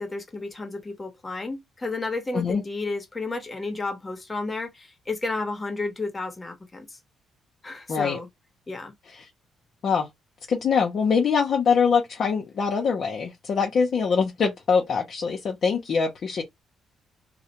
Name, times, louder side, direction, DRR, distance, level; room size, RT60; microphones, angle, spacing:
voice 1, 0.0-7.0 7.6-8.3 8.7-8.9, left 3 dB, 25° left, 1.0 m, -32 dB
voice 2, 7.9-8.2 9.1-9.3 9.8-10.1 10.5-16.4, left 5 dB, 55° left, 0.6 m, -23 dB
2.3 x 2.1 x 2.9 m
cardioid pair, 90°, 0 cm